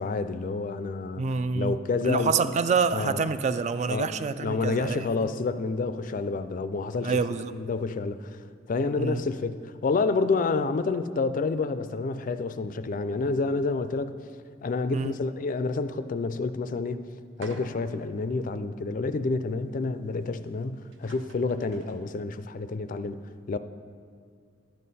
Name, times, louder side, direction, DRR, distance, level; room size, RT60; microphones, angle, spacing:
voice 1, 0.0-1.2 1.5-2.4 2.9-3.3 3.9-4.1 4.4-7.2 7.5-14.1 14.6-17.0 17.4-23.2 23.5-23.6, left 3 dB, 45° left, 12 dB, 0.4 m, -29 dB
voice 2, 1.2-1.8 2.0-5.3 7.0-7.5 9.0-9.2 14.9-15.1, right 5 dB, 35° right, 12 dB, 0.3 m, -27 dB
sound 1, 17.4-18.0 18.6-18.7 20.6-20.7 20.9-22.1, right 2 dB, 75° right, 0.9 m, -46 dB
12.0 x 7.5 x 4.1 m, 2.3 s
head